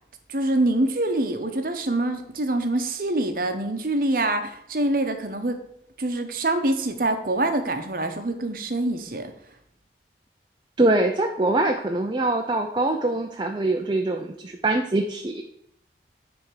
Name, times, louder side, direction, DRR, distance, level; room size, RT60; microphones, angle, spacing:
voice 1, 0.3-5.6 6.0-9.3, right 2 dB, 50° right, 6 dB, 0.9 m, -25 dB
voice 2, 10.8-15.4, right 2 dB, 25° right, 4 dB, 0.5 m, -23 dB
10.0 x 3.5 x 6.3 m, 0.74 s
head